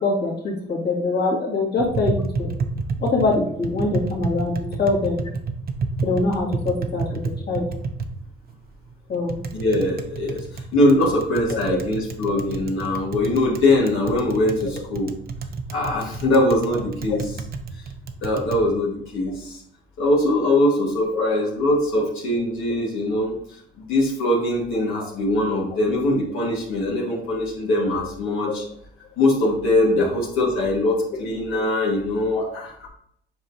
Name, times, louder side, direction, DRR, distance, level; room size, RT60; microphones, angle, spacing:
voice 1, 0.0-2.5 3.0-5.2 6.0-7.2 7.5-7.7 9.1-9.3 11.5-11.6 21.1-21.3 27.1-27.2 32.3-32.6, left 3 dB, 55° left, -2 dB, 2.2 m, -23 dB
Tap, 1.8-18.6, right 4 dB, 50° right, 0.8 m, -31 dB
voice 2, 9.5-15.1 15.7-17.3 18.2-19.6 20.0-23.6 23.9-28.6 29.2-32.9, left 1 dB, 90° left, -4 dB, 1.7 m, -22 dB
7.8 x 4.8 x 2.8 m, 0.70 s
cardioid pair, 90°, 20 cm